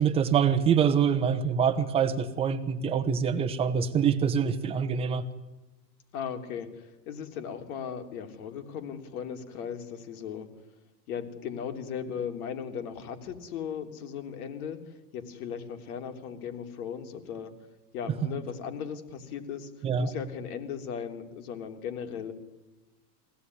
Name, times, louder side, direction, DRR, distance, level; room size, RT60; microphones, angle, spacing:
voice 1, 0.0-5.2 19.8-20.1, right 7 dB, 10° right, 7 dB, 1.0 m, -25 dB
voice 2, 6.1-10.5 11.1-17.5 17.9-19.7 20.0-22.3, left 7 dB, 60° left, 6 dB, 3.4 m, -37 dB
24.0 x 17.0 x 9.7 m, 1.1 s
supercardioid pair, 180°, 49 cm